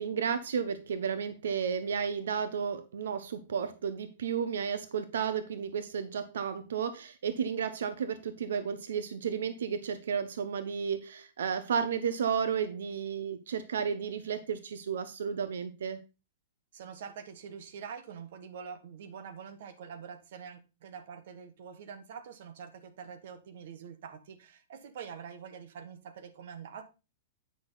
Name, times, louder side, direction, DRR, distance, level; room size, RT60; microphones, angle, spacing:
voice 1, 0.0-16.0, right 7 dB, 85° right, 0.9 m, -33 dB
voice 2, 16.7-26.8, right 7 dB, 50° right, 1.2 m, -45 dB
8.8 x 6.0 x 4.0 m
supercardioid pair, 175°, 0 cm